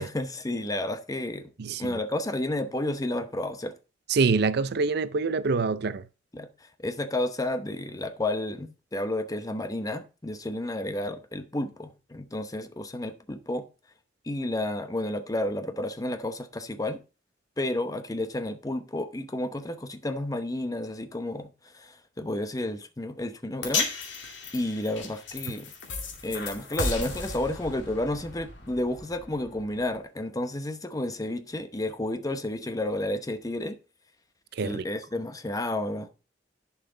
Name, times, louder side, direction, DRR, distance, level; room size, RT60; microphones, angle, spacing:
voice 1, 0.0-1.5 1.8-3.8 6.3-6.5 6.8-13.6 14.2-17.0 17.6-23.9 24.5-25.7 26.2-33.8 34.6-36.1, left 1 dB, 20° left, 0.8 m, -31 dB
voice 2, 1.6-2.0 4.1-6.0 34.6-34.8, right 4 dB, 60° right, 0.5 m, -25 dB
sound 1, 23.6-30.0, left 4 dB, 80° left, 2.3 m, -35 dB
10.5 x 5.7 x 3.8 m
head